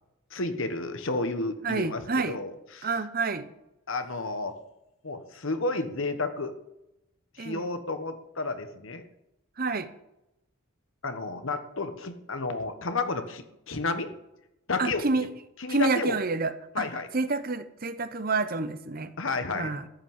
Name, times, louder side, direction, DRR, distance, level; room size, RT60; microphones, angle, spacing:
voice 1, 0.3-2.0 2.3-2.9 3.9-4.5 5.0-6.6 7.3-9.0 11.0-14.1 14.7-15.0 15.6-16.1 16.7-17.1 19.2-19.8, left 3 dB, 60° left, 9 dB, 1.3 m, -31 dB
voice 2, 1.6-2.4 2.8-3.5 7.4-7.7 9.6-9.9 14.8-15.3 15.7-16.9 17.1-19.1 19.5-19.9, right 3 dB, 40° right, 12 dB, 0.9 m, -28 dB
14.0 x 6.0 x 9.7 m, 0.88 s
head